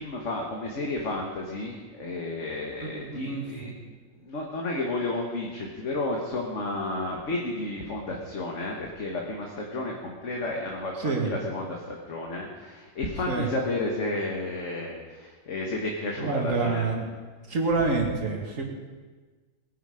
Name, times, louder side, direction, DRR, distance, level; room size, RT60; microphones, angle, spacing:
voice 1, 0.0-16.9, left 2 dB, 45° left, -1 dB, 1.7 m, -32 dB
voice 2, 2.8-3.7 11.0-11.3 13.3-13.5 16.2-17.1 17.5-18.6, right 3 dB, 45° right, 1 dB, 2.6 m, -27 dB
20.5 x 10.5 x 5.0 m, 1.4 s
omnidirectional pair, 1.9 m